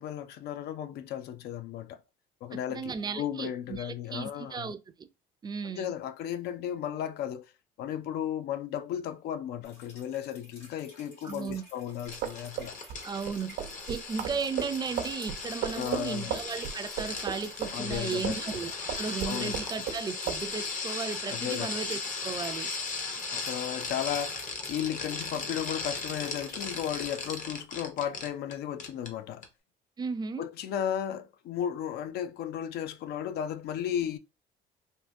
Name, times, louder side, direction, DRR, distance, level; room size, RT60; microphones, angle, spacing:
voice 1, 0.0-2.0 2.4-4.7 5.6-7.5 7.8-12.8 15.7-16.4 17.7-18.6 19.2-19.6 21.3-21.8 23.3-29.5 30.4-34.2, left 10 dB, 70° left, 0.4 m, -35 dB
voice 2, 2.5-5.1 5.4-5.9 11.2-11.6 13.0-13.6 13.9-22.7 30.0-30.4, right 5 dB, 25° right, 0.4 m, -35 dB
sound 1, 9.6-27.4, left 2 dB, 90° left, 1.8 m, -52 dB
sound 2, 12.0-18.6 18.9-20.0 20.3-20.4, right 9 dB, 80° right, 0.6 m, -35 dB
sound 3, 12.1-28.5 28.8-29.1 29.4-29.5, left 4 dB, 50° left, 0.8 m, -37 dB
3.6 x 2.5 x 2.5 m
cardioid pair, 110°, 17 cm